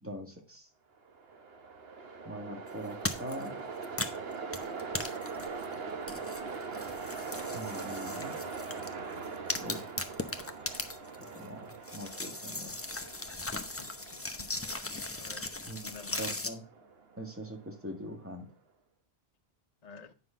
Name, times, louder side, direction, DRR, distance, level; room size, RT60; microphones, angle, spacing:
voice 1, 0.0-0.7 2.3-3.6 7.5-8.4 9.6-9.9 11.2-12.8 15.6-16.6 17.2-18.5, equal, 10° right, 1.8 m, -42 dB
Train, 1.0-18.2, right 4 dB, 65° right, 1.3 m, -42 dB
sound 1, 3.0-3.5 3.8-5.7 6.1-8.9 9.2-11.4 11.7-16.5, left 2 dB, 15° left, 0.6 m, -38 dB
voice 2, 13.8-14.7 15.1-15.5 15.8-16.3 19.8-20.1, left 4 dB, 40° left, 1.0 m, -50 dB
9.4 x 5.8 x 3.6 m
omnidirectional pair, 1.1 m